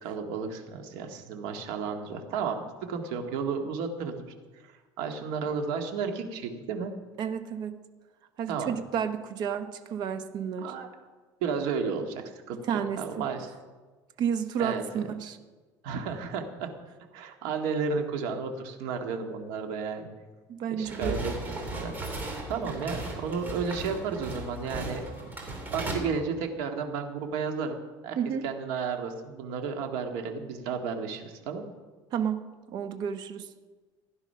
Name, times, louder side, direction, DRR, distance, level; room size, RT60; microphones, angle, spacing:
voice 1, 0.0-4.3 5.0-6.9 8.5-8.7 10.6-10.9 11.4-13.5 14.6-14.8 15.8-16.7 17.1-20.1 20.7-21.9 22.5-25.3 25.7-27.8 28.0-28.2 28.4-31.6, right 5 dB, 80° right, 4 dB, 2.1 m, -33 dB
voice 2, 7.2-7.8 8.4-10.7 12.7-13.3 14.2-15.4 20.5-21.2 28.2-28.4 32.1-33.5, right 8 dB, 50° right, 9 dB, 1.2 m, -31 dB
sound 1, 20.8-25.9, right 2 dB, 20° right, 2.9 m, -36 dB
16.5 x 11.0 x 5.7 m, 1.3 s
cardioid pair, 160°, 9 cm